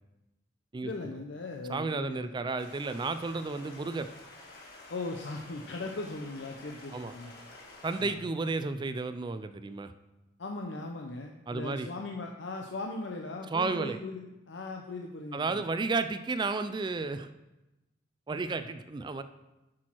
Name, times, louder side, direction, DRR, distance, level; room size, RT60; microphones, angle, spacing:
voice 1, 0.8-2.3 4.9-7.3 8.0-8.1 10.4-15.6, left 2 dB, 70° left, 2 dB, 0.7 m, -39 dB
voice 2, 1.7-4.1 6.9-7.1 7.8-9.9 11.5-11.9 13.5-14.0 15.3-17.3 18.3-19.2, right 3 dB, 25° right, 11 dB, 0.4 m, -32 dB
Stream, 2.6-8.1, left 2 dB, 55° left, 1.8 m, -50 dB
8.5 x 6.2 x 4.5 m, 0.99 s
head